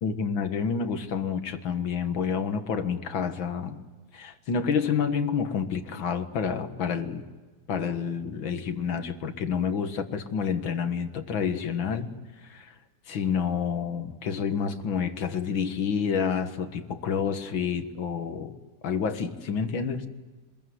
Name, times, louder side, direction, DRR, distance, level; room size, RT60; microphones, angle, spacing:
voice 1, 0.0-3.8 4.1-7.2 7.7-12.1 12.4-12.7 13.1-18.5 18.8-20.1, left 6 dB, 90° left, 8 dB, 2.3 m, -29 dB
26.0 x 21.5 x 9.5 m, 1.3 s
omnidirectional pair, 2.1 m